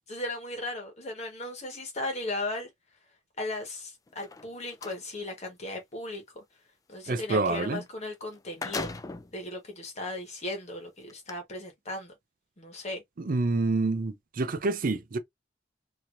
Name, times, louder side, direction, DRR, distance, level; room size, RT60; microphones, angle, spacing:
voice 1, 0.1-2.7 3.4-6.4 6.9-8.9 9.3-12.1 12.6-13.0, left 2 dB, 35° left, 1.3 m, -36 dB
sound 1, 4.1-5.0 7.9-8.0 8.3-9.4 10.1-10.2 11.1-11.3, left 3 dB, 20° left, 0.3 m, -37 dB
voice 2, 7.1-7.8 13.2-15.2, right 3 dB, 50° right, 0.5 m, -27 dB
3.0 x 2.9 x 2.5 m
head